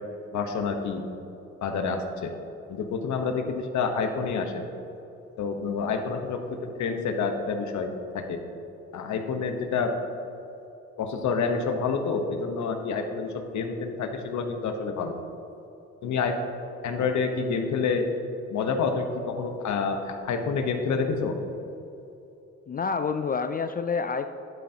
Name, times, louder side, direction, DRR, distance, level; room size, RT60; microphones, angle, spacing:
voice 1, 0.3-1.0 1.6-2.3 2.7-4.6 5.4-8.4 8.9-9.9 11.0-15.1 16.0-16.4 16.8-18.1 18.5-21.4, left 5 dB, 70° left, 5 dB, 1.1 m, -28 dB
voice 2, 22.7-24.3, left 5 dB, 30° left, 9 dB, 0.4 m, -28 dB
11.5 x 9.0 x 2.9 m, 2.8 s
cardioid pair, 90°, 30 cm